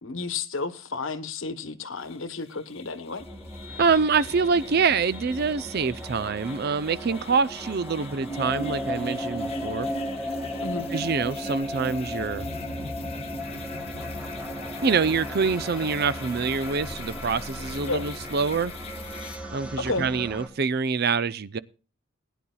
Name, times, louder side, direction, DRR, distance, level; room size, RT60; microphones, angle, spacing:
voice 1, 0.0-3.2 10.6-10.9 17.9-18.1 19.8-20.1, left 3 dB, 70° left, 1.1 m, -31 dB
sound 1, 1.9-19.4, left 6 dB, 30° left, 1.2 m, -45 dB
sound 2, 3.2-20.5, equal, 5° right, 1.8 m, -35 dB
voice 2, 3.8-9.9 10.9-12.5 14.8-18.7 19.5-21.6, right 5 dB, 50° right, 0.5 m, -25 dB
20.0 x 10.0 x 2.3 m
head